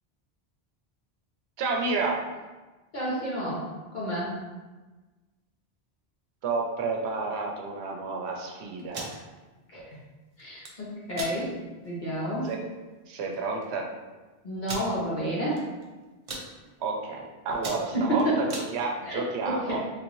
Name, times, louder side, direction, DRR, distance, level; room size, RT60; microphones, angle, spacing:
voice 1, 1.6-2.2 6.4-9.1 12.4-12.6 13.1-13.9 16.8-19.8, right 3 dB, 90° right, 1 dB, 0.9 m, -30 dB
voice 2, 2.9-3.6 3.9-4.3 9.7-9.8 10.4-11.5 11.8-12.5 14.4-15.6 17.9-18.4 19.1-19.8, right 1 dB, 50° left, -7 dB, 1.1 m, -29 dB
sound 1, 8.8-9.2 10.4-10.7 11.1-11.4 11.9-12.0 12.3-12.5 13.3-13.4 13.6-13.7 14.6-14.9 15.5-15.8 16.1-16.5 17.0-17.2 17.5-18.7, right 2 dB, 45° right, 0.5 m, -37 dB
3.3 x 2.6 x 3.0 m, 1.2 s
omnidirectional pair, 1.1 m